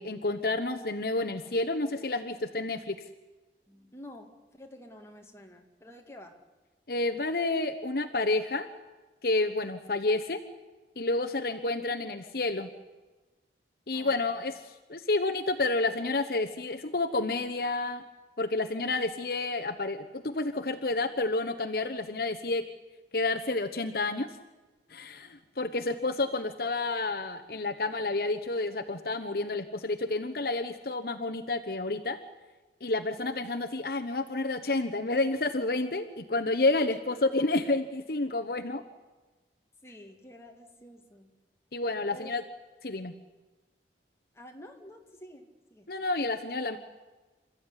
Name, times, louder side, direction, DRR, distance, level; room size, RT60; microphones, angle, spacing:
voice 1, 0.0-3.0 6.9-8.7 9.2-10.4 11.0-12.7 13.9-18.0 18.4-22.7 23.1-24.3 24.9-32.2 32.8-38.8 41.7-42.4 42.8-43.1 45.9-46.8, left 2 dB, 55° left, 7 dB, 1.0 m, -30 dB
voice 2, 3.7-6.4 13.9-14.4 33.4-33.5 36.9-37.0 39.8-41.3 42.1-42.3 44.3-45.9, left 1 dB, 15° left, 3 dB, 2.3 m, -49 dB
27.5 x 14.0 x 9.8 m, 1.2 s
head